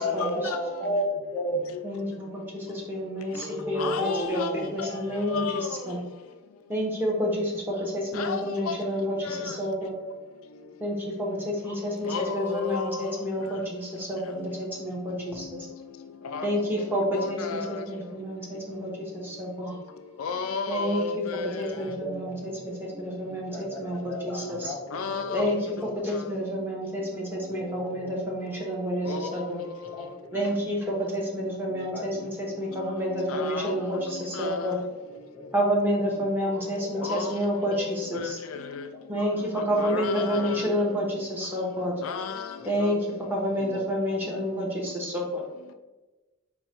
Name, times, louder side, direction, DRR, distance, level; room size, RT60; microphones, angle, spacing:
voice 1, 0.0-1.6 3.3-5.4 9.7-9.8 11.4-11.5 15.7-15.8 17.1-17.5 21.8-22.6 23.0-25.8 27.5-28.3 28.7-29.4 29.9-30.0 31.2-31.3 31.7-32.2 33.9-34.0 35.3-35.4 36.1-36.3 36.8-37.1 40.1-40.7 42.0-42.1 42.6-42.9 43.4-43.8 44.3-44.4, equal, 5° left, 0.4 m, -35 dB
voice 2, 1.8-6.0 6.7-9.9 10.8-15.5 16.4-19.8 20.7-21.0 21.6-24.7 25.3-25.6 26.0-29.6 30.3-34.8 35.5-38.4 39.1-41.9 42.7-45.4, equal, 10° right, 0.8 m, -29 dB
voice 3, 3.8-4.5 4.8-4.9 5.3-5.6 8.1-8.4 9.2-9.4 12.1-13.1 16.3-16.4 17.1-17.7 20.2-21.5 24.9-25.9 29.1-29.3 33.3-33.7 34.4-34.7 37.1-37.3 37.7-37.8 38.1-38.3 38.8-38.9 39.8-40.6 42.0-42.4, left 5 dB, 85° left, 0.4 m, -32 dB
4.4 x 2.2 x 4.3 m
head